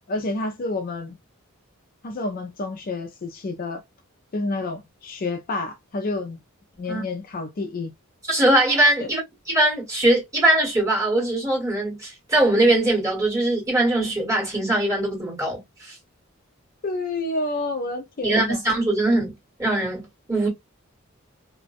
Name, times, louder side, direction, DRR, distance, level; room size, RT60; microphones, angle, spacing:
voice 1, 0.1-1.2 2.0-3.8 4.3-6.4 6.8-7.9 16.8-18.6, left 2 dB, 40° left, 0.4 m, -29 dB
voice 2, 8.3-9.2 9.5-15.9 18.2-19.3 19.6-20.5, right 1 dB, 15° right, 1.5 m, -21 dB
2.5 x 2.2 x 2.3 m
head